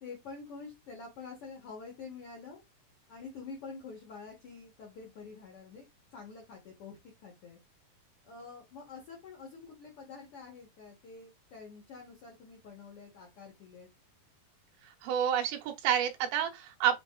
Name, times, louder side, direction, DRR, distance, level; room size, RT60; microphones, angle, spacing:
voice 1, 0.0-2.6 3.1-5.8 6.1-7.6 8.2-13.9, left 4 dB, 85° left, 1.2 m, -47 dB
voice 2, 15.0-17.0, right 9 dB, 85° right, 2.6 m, -29 dB
6.1 x 3.0 x 2.3 m
omnidirectional pair, 4.3 m